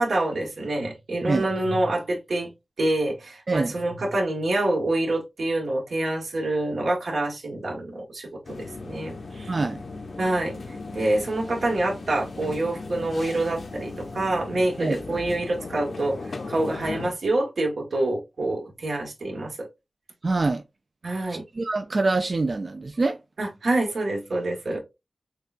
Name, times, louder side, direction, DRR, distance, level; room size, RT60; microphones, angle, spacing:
voice 1, 0.0-2.5 2.8-9.5 10.2-19.7 21.0-21.4 23.4-24.8, right 2 dB, 85° right, 1.5 m, -26 dB
sound 1, 8.4-17.1, left 3 dB, 70° left, 0.7 m, -37 dB
voice 2, 9.5-9.8 14.8-15.0 20.2-20.6 21.3-23.2 24.7-24.8, right 3 dB, 45° right, 0.4 m, -25 dB
6.5 x 2.3 x 2.5 m
wide cardioid pair, 110°, 0 cm